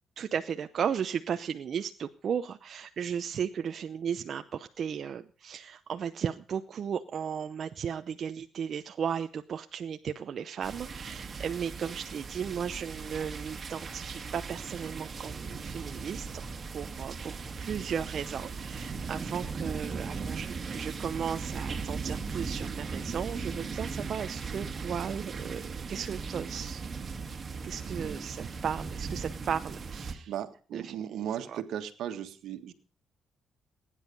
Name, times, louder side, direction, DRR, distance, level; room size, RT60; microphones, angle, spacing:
voice 1, 0.2-16.5 16.7-25.6 25.9-26.8 27.6-30.3 30.7-30.9, right 7 dB, 55° right, 8 dB, 0.7 m, -35 dB
sound 1, 10.6-30.1, right 5 dB, 40° right, 2.3 m, -38 dB
voice 2, 30.3-32.7, right 10 dB, 80° right, 8 dB, 1.6 m, -36 dB
20.5 x 10.0 x 5.4 m, 0.40 s
cardioid pair, 90°, 0 cm